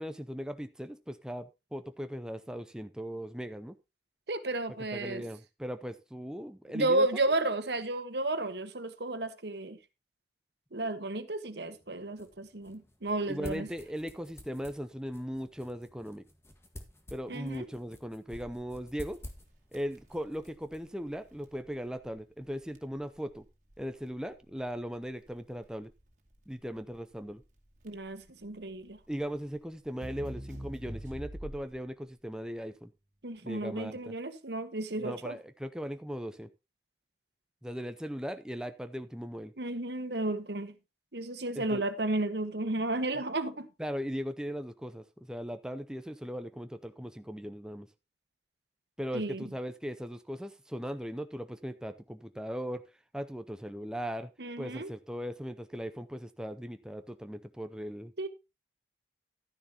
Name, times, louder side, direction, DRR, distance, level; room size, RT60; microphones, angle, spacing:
voice 1, 0.0-3.8 4.7-7.1 13.3-16.2 17.1-19.2 19.7-23.4 23.8-25.9 26.5-27.4 29.1-32.9 33.4-34.1 35.0-36.5 37.6-39.5 41.6-41.8 43.8-47.9 49.0-52.8 53.1-54.3 54.6-58.1, equal, 5° right, 0.5 m, -38 dB
voice 2, 4.3-5.2 6.7-9.8 10.7-13.7 17.3-17.7 27.8-29.0 33.2-35.4 39.6-40.7 41.1-43.7 49.1-49.4 54.4-54.9 58.2-58.3, right 2 dB, 70° right, 1.4 m, -32 dB
sound 1, 11.7-21.6, left 1 dB, 15° left, 1.5 m, -52 dB
Crackle, 18.3-31.9, equal, 45° right, 2.3 m, -47 dB
12.5 x 10.5 x 2.9 m
head